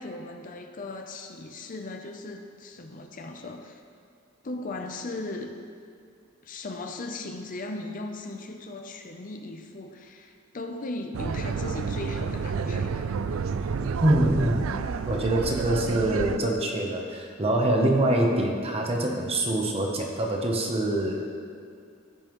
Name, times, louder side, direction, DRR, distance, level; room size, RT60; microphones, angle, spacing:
voice 1, 0.0-3.8 4.4-5.5 6.4-13.2, left 2 dB, 40° left, 4 dB, 0.6 m, -37 dB
sound 1, 11.1-16.4, right 5 dB, 85° right, 0.4 m, -30 dB
voice 2, 14.0-14.7 15.0-21.3, right 1 dB, 30° right, 1 dB, 0.9 m, -24 dB
15.5 x 5.4 x 3.1 m, 2.3 s
head